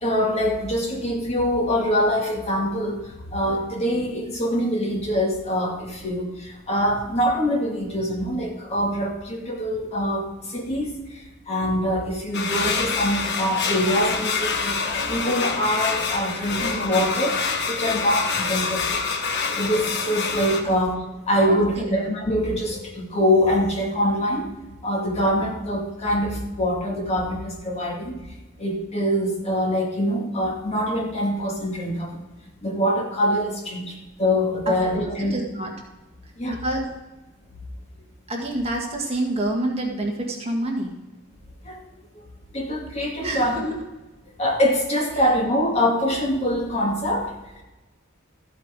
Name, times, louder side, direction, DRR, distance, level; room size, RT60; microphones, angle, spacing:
voice 1, 0.0-3.0 3.3-10.9 11.5-14.8 15.1-19.0 19.6-21.0 21.2-24.5 24.8-28.2 28.6-32.2 32.6-35.4 36.4-36.6 41.6-41.8 42.5-43.6 44.4-47.3, equal, 30° left, 0 dB, 2.1 m, -24 dB
sound 1, 12.3-20.6, left 5 dB, 55° left, 1.2 m, -26 dB
voice 2, 21.4-21.9 34.7-35.7 36.5-36.9 38.3-40.9 43.2-43.6 45.2-45.3 45.8-45.9, right 1 dB, 30° right, 0 dB, 1.7 m, -28 dB
14.0 x 8.2 x 3.7 m, 1.1 s
head